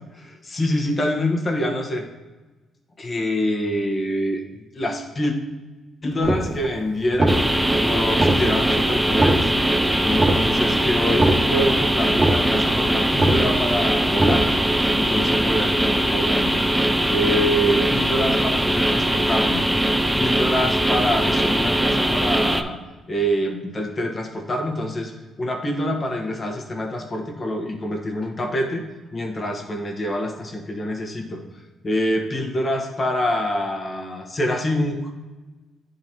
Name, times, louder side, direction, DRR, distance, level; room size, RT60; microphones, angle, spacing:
voice 1, 0.2-2.1 3.0-4.4 4.7-5.3 6.0-7.4 7.8-9.5 10.0-14.5 14.9-16.6 17.1-19.7 20.1-22.8 23.1-25.1 25.4-28.8 29.1-31.4 31.8-35.1, left 1 dB, 35° left, 2 dB, 1.2 m, -25 dB
sound 1, 6.2-6.8 7.1-7.8 8.1-8.8 9.1-9.8 10.1-10.8 11.1-11.8 12.1-12.8 13.1-13.8 14.1-14.8, right 1 dB, 30° right, 1.3 m, -22 dB
sound 2, 7.3-22.6, right 1 dB, 5° right, 0.5 m, -21 dB
10.5 x 3.9 x 2.9 m, 1.2 s
cardioid pair, 90°, 0 cm